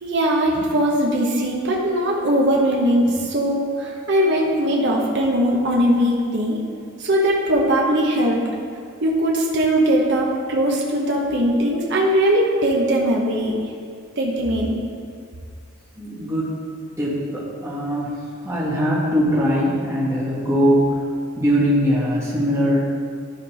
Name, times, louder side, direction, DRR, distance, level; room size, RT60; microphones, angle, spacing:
voice 1, 0.0-6.6 7.0-8.4 9.0-13.5 14.2-14.8, equal, 50° right, -2 dB, 1.0 m, -20 dB
voice 2, 16.0-16.5 17.0-20.9 21.4-22.9, equal, 15° right, -7 dB, 2.0 m, -21 dB
12.0 x 4.5 x 5.1 m, 2.2 s
head